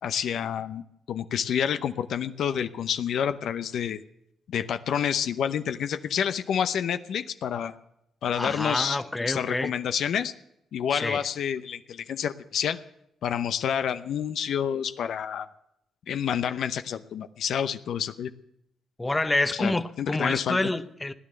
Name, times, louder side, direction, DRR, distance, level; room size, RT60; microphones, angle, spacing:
voice 1, 0.0-4.0 4.5-7.8 8.2-10.3 10.7-12.8 13.2-15.5 16.1-18.3 19.6-20.6, left 8 dB, 70° left, 11 dB, 0.7 m, -28 dB
voice 2, 8.3-9.7 10.9-11.2 19.0-21.1, left 2 dB, 15° left, 11 dB, 0.9 m, -27 dB
17.0 x 10.0 x 7.8 m, 0.79 s
cardioid pair, 90°, 0 cm